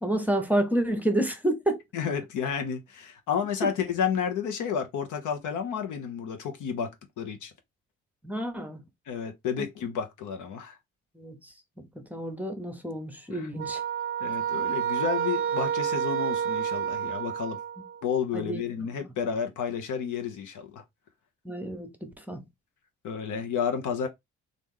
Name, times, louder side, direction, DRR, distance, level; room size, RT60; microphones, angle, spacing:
voice 1, 0.0-1.8 3.6-3.7 8.2-8.8 11.1-13.8 18.3-19.1 21.4-22.4, right 1 dB, 5° right, 0.8 m, -30 dB
voice 2, 1.9-6.9 7.2-7.5 9.1-10.8 13.3-13.5 14.2-17.6 18.0-20.8 23.0-24.1, left 7 dB, 80° left, 0.9 m, -31 dB
sound 1, 13.6-18.0, right 8 dB, 45° right, 0.4 m, -29 dB
3.0 x 2.6 x 3.6 m
cardioid pair, 90°, 30 cm